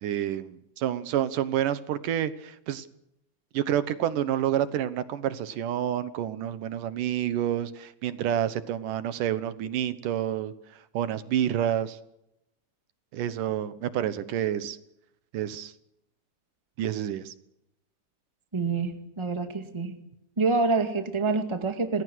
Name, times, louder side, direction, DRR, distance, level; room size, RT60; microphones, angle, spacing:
voice 1, 0.0-2.9 3.5-10.5 10.9-12.0 13.1-14.8 15.3-15.7 16.8-17.3, right 10 dB, 80° right, 14 dB, 2.7 m, -28 dB
voice 2, 18.5-20.0 20.4-22.0, right 4 dB, 10° right, 7 dB, 1.6 m, -27 dB
27.5 x 20.0 x 6.4 m, 0.82 s
omnidirectional pair, 3.8 m